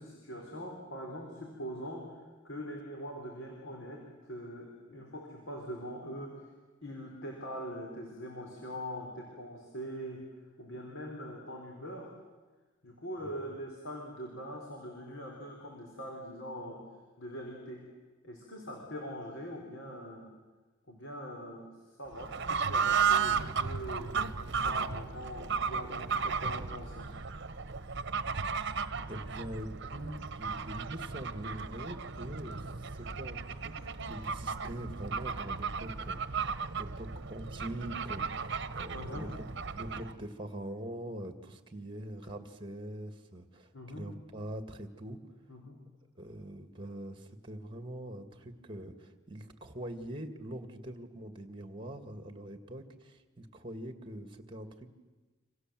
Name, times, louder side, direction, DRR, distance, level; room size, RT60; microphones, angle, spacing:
voice 1, 0.0-2.1 2.4-6.5 6.8-10.2 10.6-12.2 12.8-16.8 17.2-17.8 18.2-20.3 20.9-27.1 38.9-39.3 43.7-44.1 45.5-45.8, equal, 70° left, 1 dB, 4.2 m, -43 dB
Fowl / Bird, 22.1-40.2, right 6 dB, 60° right, 1.1 m, -34 dB
voice 2, 29.1-33.7 34.1-38.5 38.7-39.4 39.7-45.2 46.2-54.9, right 1 dB, 25° right, 8 dB, 2.1 m, -43 dB
28.5 x 26.0 x 7.7 m, 1.3 s
head